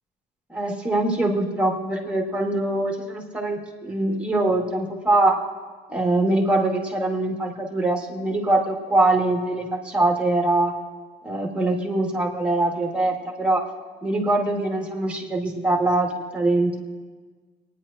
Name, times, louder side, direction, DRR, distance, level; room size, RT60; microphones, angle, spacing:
voice 1, 0.5-5.4 5.9-10.7 11.2-13.6 14.0-16.8, right 2 dB, 5° right, 0 dB, 2.2 m, -23 dB
30.0 x 10.0 x 2.9 m, 1.4 s
cardioid pair, 110°, 17 cm